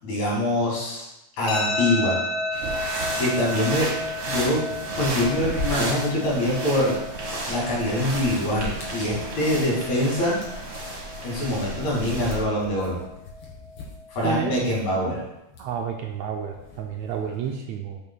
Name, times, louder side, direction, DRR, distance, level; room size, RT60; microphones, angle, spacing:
voice 1, 0.0-1.1 1.4-2.2 2.5-2.6 3.2-3.9 4.2-4.7 5.0-7.0 7.5-10.4 11.2-13.0 14.1-15.2, left 1 dB, 70° left, -4 dB, 3.6 m, -24 dB
sound 1, 1.5-14.5, left 1 dB, 85° left, 2.3 m, -34 dB
sound 2, 2.5-12.4, right 2 dB, 45° right, 1.0 m, -33 dB
sound 3, 3.8-3.9 4.2-17.6, left 1 dB, 55° left, 2.7 m, -42 dB
voice 2, 15.6-18.0, right 8 dB, 80° right, 2 dB, 1.6 m, -30 dB
8.7 x 7.0 x 2.3 m, 0.92 s
omnidirectional pair, 3.4 m